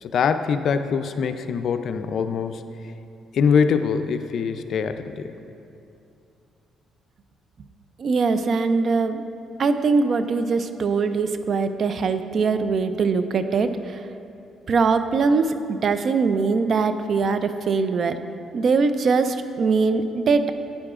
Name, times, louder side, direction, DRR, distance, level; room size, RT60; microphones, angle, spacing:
voice 1, 0.0-2.6 3.3-5.3, left 6 dB, 65° left, 9 dB, 0.4 m, -23 dB
voice 2, 8.0-9.2 9.6-14.0 14.7-18.2 18.5-20.5, right 4 dB, 55° right, 10 dB, 0.4 m, -22 dB
11.5 x 9.3 x 2.4 m, 2.6 s
cardioid pair, 90°, 0 cm